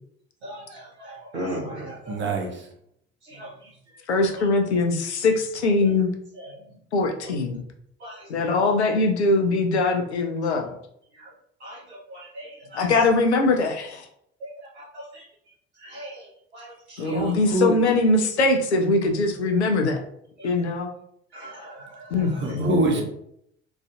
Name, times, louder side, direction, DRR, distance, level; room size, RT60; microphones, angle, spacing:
voice 1, 0.4-2.1 3.2-3.7 4.2-4.5 5.8-5.9 6.3-6.6 8.0-8.5 11.1-11.3 11.6-13.0 14.4-15.2 15.8-17.3 20.4-20.5 21.3-23.0, right 1 dB, 80° right, -6 dB, 0.7 m, -37 dB
voice 2, 2.1-2.7 17.0-17.8 22.3-23.0, right 2 dB, 35° right, 0 dB, 0.8 m, -25 dB
voice 3, 4.1-6.1 6.9-7.6 8.3-10.8 12.7-14.1 17.0-20.0 20.4-20.9 22.1-22.7, left 3 dB, 85° left, 4 dB, 0.5 m, -22 dB
3.0 x 2.4 x 2.4 m, 0.72 s
figure-of-eight pair, 55°, 33 cm